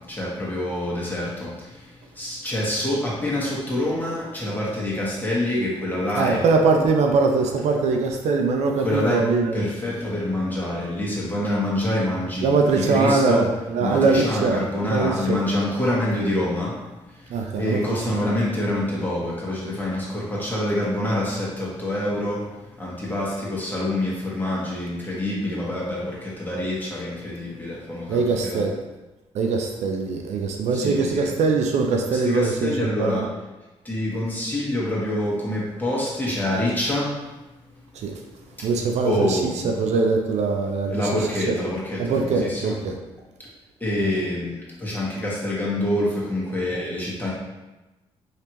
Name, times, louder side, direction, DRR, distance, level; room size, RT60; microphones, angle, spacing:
voice 1, 0.0-6.4 8.8-9.2 9.5-13.4 13.8-16.8 17.1-28.7 30.7-31.3 32.1-33.3 33.8-37.2 38.6-38.7 39.0-39.8 40.9-42.8 43.4-43.5 43.8-47.3, left 1 dB, 15° left, -6 dB, 1.5 m, -26 dB
voice 2, 6.2-9.6 12.4-14.6 14.9-15.4 17.3-18.2 28.1-28.7 29.3-33.2 37.9-38.2 38.6-41.0 41.5-41.6 42.0-42.9 44.0-44.1, right 4 dB, 70° right, 2 dB, 0.4 m, -22 dB
3.2 x 2.8 x 2.9 m, 1.1 s
supercardioid pair, 60°, 12 cm